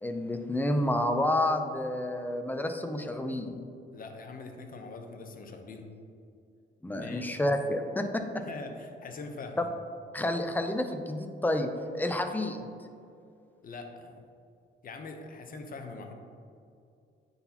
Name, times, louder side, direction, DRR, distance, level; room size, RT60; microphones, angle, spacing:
voice 1, 0.0-3.6 6.8-8.4 10.1-12.7, left 1 dB, 10° left, 6 dB, 0.5 m, -30 dB
voice 2, 3.9-5.9 6.9-7.4 8.5-9.6 13.6-14.2 14.8-16.1, left 3 dB, 45° left, 4 dB, 0.8 m, -43 dB
9.6 x 4.0 x 2.9 m, 2.4 s
cardioid pair, 90°, 20 cm